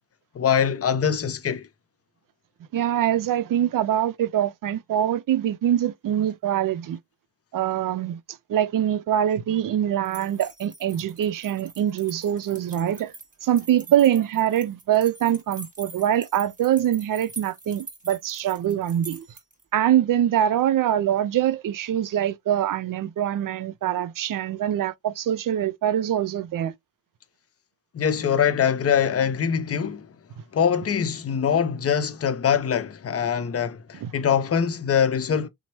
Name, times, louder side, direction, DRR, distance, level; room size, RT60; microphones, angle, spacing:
voice 1, 0.3-1.7 27.9-30.1 30.5-35.5, left 7 dB, 35° left, 0.6 m, -23 dB
voice 2, 2.7-7.0 7.5-8.2 8.5-13.1 13.4-19.3 19.7-26.7 34.0-34.1, right 11 dB, 45° right, 0.5 m, -24 dB
sound 1, 10.0-19.6, right 3 dB, 20° right, 1.4 m, -44 dB
2.9 x 2.1 x 2.8 m
supercardioid pair, 50°, 45 cm